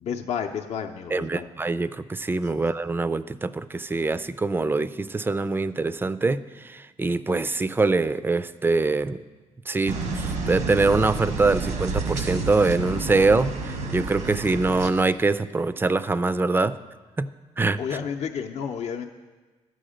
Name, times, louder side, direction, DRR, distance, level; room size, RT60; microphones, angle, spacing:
voice 1, 0.0-1.5 2.5-2.6 17.8-19.1, left 7 dB, 60° left, 2 dB, 0.6 m, -31 dB
voice 2, 1.1-9.2 9.7-16.8 17.2-17.3 17.6-17.8, right 3 dB, 15° right, 15 dB, 0.4 m, -24 dB
sound 1, 9.9-14.9, right 3 dB, 80° right, 1.4 m, -30 dB
12.0 x 7.8 x 5.0 m, 1.3 s
cardioid pair, 85°, 12 cm